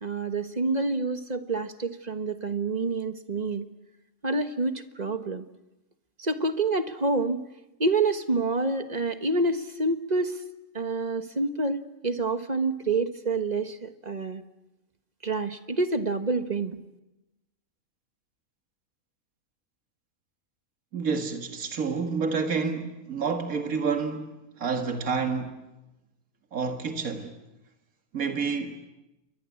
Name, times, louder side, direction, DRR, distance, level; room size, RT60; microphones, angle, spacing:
voice 1, 0.0-3.6 4.2-5.5 6.2-7.5 7.8-10.4 10.7-14.4 15.2-16.8, right 3 dB, 30° right, 1.5 m, -27 dB
voice 2, 20.9-25.6 26.5-27.3 28.1-28.8, right 5 dB, 75° right, 2.3 m, -29 dB
29.0 x 24.0 x 8.5 m
omnidirectional pair, 1.5 m